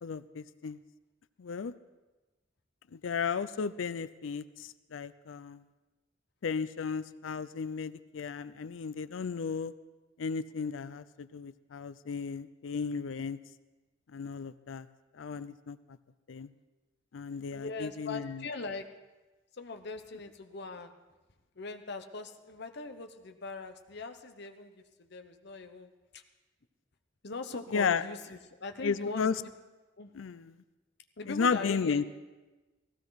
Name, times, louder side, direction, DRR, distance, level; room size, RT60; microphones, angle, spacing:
voice 1, 0.0-0.8 1.4-1.7 2.9-5.6 6.4-9.7 10.2-13.4 14.1-14.9 15.1-15.8 16.3-16.5 17.1-18.4 27.7-28.0 28.8-29.3 30.1-30.5 31.3-32.1, left 5 dB, 85° left, 15 dB, 0.5 m, -34 dB
voice 2, 17.5-18.9 19.5-21.0 21.5-26.2 27.2-29.3 30.0-30.1 31.2-32.1, left 3 dB, 60° left, 7 dB, 1.0 m, -41 dB
17.5 x 16.0 x 4.0 m, 1.2 s
head